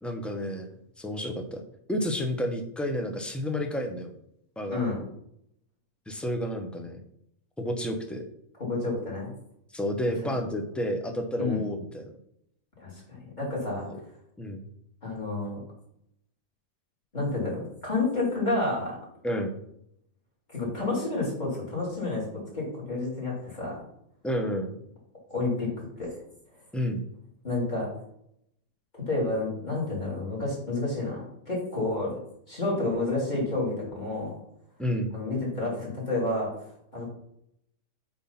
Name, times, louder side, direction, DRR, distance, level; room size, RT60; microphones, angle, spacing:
voice 1, 0.0-0.7 1.0-1.6 1.9-4.1 4.6-4.8 6.1-7.0 7.6-8.2 9.7-12.1 14.4-14.7 19.2-19.6 24.2-24.8 26.7-27.0 34.8-35.1, equal, ahead, 4 dB, 0.6 m, -30 dB
voice 2, 8.6-9.3 10.2-10.3 11.4-11.6 12.8-13.9 15.0-15.6 17.1-19.0 20.5-23.8 25.3-25.7 26.0-26.1 27.4-27.9 29.1-32.1 32.5-34.3 35.1-36.5 36.9-37.1, left 2 dB, 30° left, -4 dB, 3.5 m, -30 dB
8.4 x 3.9 x 5.7 m, 0.74 s
omnidirectional pair, 1.6 m